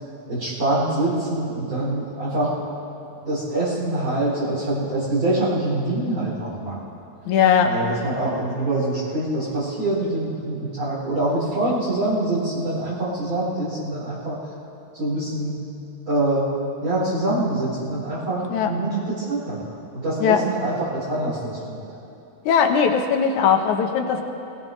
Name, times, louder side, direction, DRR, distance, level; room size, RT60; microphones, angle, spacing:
voice 1, 0.3-2.6 3.2-6.8 7.6-14.4 14.9-15.6 16.1-16.5 16.8-19.6 19.9-21.8, right 2 dB, 40° right, -12 dB, 4.8 m, -25 dB
voice 2, 7.3-7.7 18.5-18.7 20.2-20.4 22.5-24.2, left 7 dB, 80° left, 4 dB, 2.5 m, -19 dB
23.0 x 18.5 x 3.2 m, 3.0 s
omnidirectional pair, 3.4 m